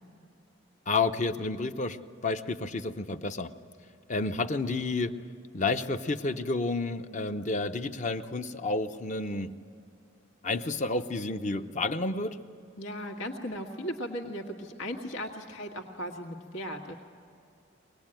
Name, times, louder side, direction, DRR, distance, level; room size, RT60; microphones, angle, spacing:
voice 1, 0.9-2.0 2.2-3.5 4.1-5.1 5.5-9.5 10.4-12.4, left 3 dB, 35° left, 8 dB, 0.8 m, -30 dB
voice 2, 12.8-16.9, equal, 85° left, 1 dB, 2.0 m, -37 dB
24.0 x 20.0 x 9.0 m, 2.5 s
head